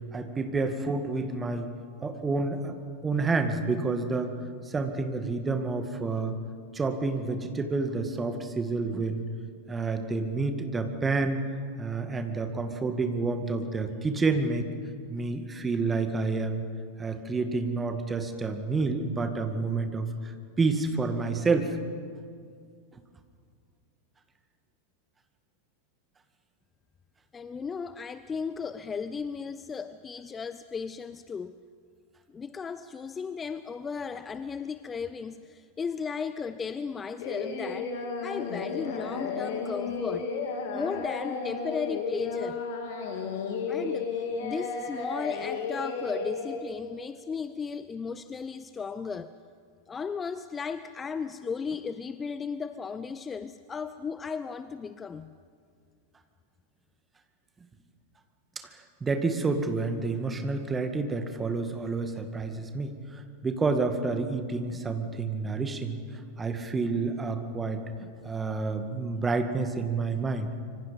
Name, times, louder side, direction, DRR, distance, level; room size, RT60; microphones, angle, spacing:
voice 1, 0.1-1.7 2.0-2.8 3.0-4.3 4.7-6.3 6.7-9.2 9.7-11.4 11.8-14.7 15.1-16.7 17.0-20.3 20.6-21.8 58.6-66.0 66.4-67.8 68.2-70.5, right 3 dB, 15° right, 7 dB, 2.1 m, -29 dB
voice 2, 27.3-31.6 32.3-38.0 38.2-40.3 40.7-42.6 43.7-49.3 49.9-55.3, left 5 dB, 20° left, 13 dB, 0.6 m, -35 dB
Singing, 37.2-46.6, left 4 dB, 50° left, 3.1 m, -33 dB
25.5 x 25.0 x 5.3 m, 2.2 s
figure-of-eight pair, 90°, 0 cm